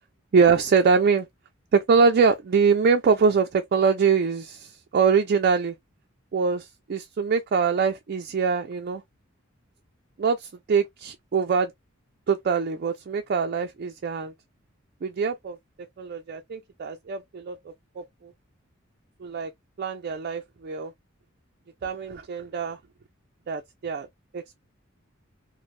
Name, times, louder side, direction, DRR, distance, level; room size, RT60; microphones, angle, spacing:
voice 1, 0.3-1.3 1.7-5.7 6.3-9.0 10.2-11.7 12.3-14.3 15.0-15.6 16.0-17.6 18.0-18.3 19.2-19.5 19.8-20.9 21.8-22.8 23.5-24.1 24.3-24.6, right 5 dB, 50° right, 0.4 m, -23 dB
3.1 x 2.1 x 2.5 m
head